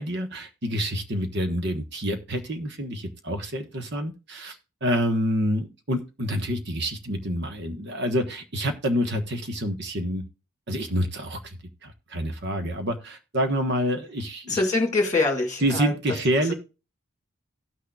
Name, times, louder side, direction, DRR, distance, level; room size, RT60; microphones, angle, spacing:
voice 1, 0.0-4.6 4.8-10.2 10.7-11.6 11.8-14.6 15.6-16.5, equal, 55° right, 6 dB, 1.3 m, -27 dB
voice 2, 14.5-15.9, left 3 dB, 15° left, 2 dB, 2.0 m, -24 dB
17.0 x 6.5 x 2.4 m, 0.30 s
head